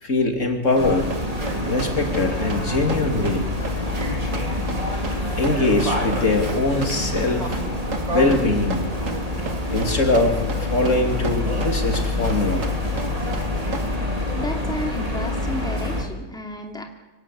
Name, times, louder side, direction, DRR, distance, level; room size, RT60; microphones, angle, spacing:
voice 1, 0.0-1.1 1.7-3.5 5.4-7.6 8.1-8.9 9.7-12.7, left 2 dB, 65° left, 4 dB, 3.2 m, -22 dB
Run, 0.7-14.0, right 3 dB, 65° right, 2.3 m, -36 dB
sound 1, 0.8-16.0, left 1 dB, 25° right, 3.7 m, -26 dB
voice 2, 14.3-16.8, left 1 dB, 5° left, 3 dB, 2.7 m, -32 dB
25.5 x 17.0 x 8.3 m, 1.1 s
omnidirectional pair, 1.4 m